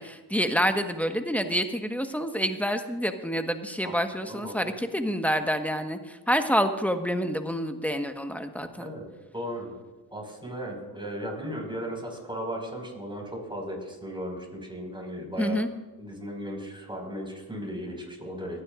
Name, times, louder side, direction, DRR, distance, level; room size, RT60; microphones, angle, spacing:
voice 1, 0.0-8.9 15.4-15.7, equal, 5° left, 7 dB, 1.3 m, -28 dB
voice 2, 4.2-4.7 8.8-9.1 9.3-9.8 10.1-15.6 16.0-18.6, equal, 10° right, 0 dB, 5.2 m, -36 dB
26.5 x 10.0 x 2.5 m, 1.2 s
supercardioid pair, 40°, 40 cm